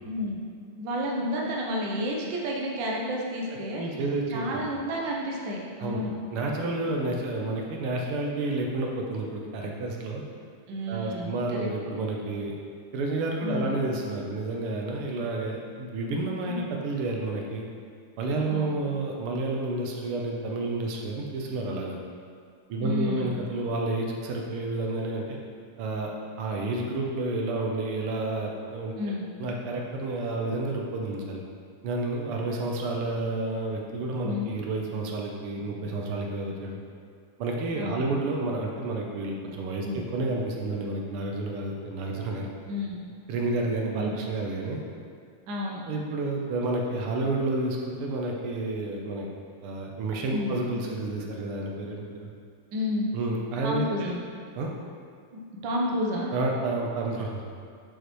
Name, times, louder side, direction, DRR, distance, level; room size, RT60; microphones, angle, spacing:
voice 1, 0.1-0.4 0.8-3.8 4.3-6.1 10.7-11.7 13.4-13.8 16.4-16.6 18.5-18.8 22.8-23.3 29.0-29.3 34.2-34.5 37.8-38.1 39.8-40.0 42.7-43.0 44.0-44.1 45.5-45.8 50.3-50.5 52.7-53.1 53.6-54.2 55.3-56.3, left 1 dB, 65° right, -2 dB, 1.5 m, -31 dB
voice 2, 3.7-4.6 5.8-6.0 6.3-10.2 10.9-12.5 12.9-17.6 18.2-22.0 22.7-25.4 25.8-26.1 26.4-29.1 29.4-31.4 31.8-36.8 37.4-42.5 43.3-44.8 45.9-49.3 49.6-52.3 53.1-54.2 54.5-54.7 56.3-57.4, right 2 dB, 85° right, 0 dB, 1.7 m, -30 dB
6.9 x 6.5 x 3.0 m, 2.2 s
omnidirectional pair, 2.4 m